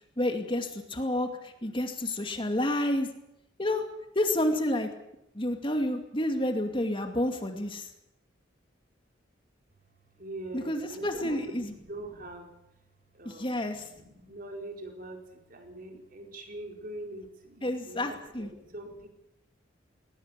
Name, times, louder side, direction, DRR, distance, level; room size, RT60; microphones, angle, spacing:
voice 1, 0.2-3.1 3.6-3.8 4.1-4.9 5.3-7.9 10.5-11.7 13.2-13.9 17.6-18.5, left 1 dB, 25° left, 5 dB, 2.4 m, -29 dB
voice 2, 10.2-12.5 13.1-15.2 15.5-19.1, right 1 dB, 45° right, 3 dB, 4.5 m, -43 dB
21.5 x 19.5 x 8.3 m, 0.83 s
head